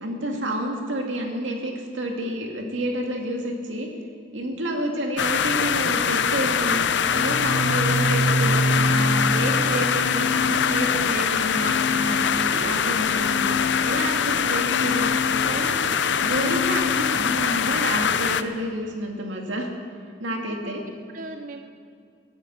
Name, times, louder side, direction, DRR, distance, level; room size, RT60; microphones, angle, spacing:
voice 1, 0.0-3.9 4.3-6.8 7.1-13.6 13.8-15.8 16.2-19.7 20.2-20.8, right 1 dB, 85° right, 1 dB, 2.3 m, -29 dB
sound 1, 5.2-18.4, left 7 dB, 70° left, 0.6 m, -23 dB
Organ, 7.0-17.8, left 1 dB, 10° right, 2.6 m, -28 dB
voice 2, 15.8-16.6 20.3-21.6, right 2 dB, 45° right, 6 dB, 0.5 m, -41 dB
13.5 x 11.0 x 7.1 m, 2.3 s
head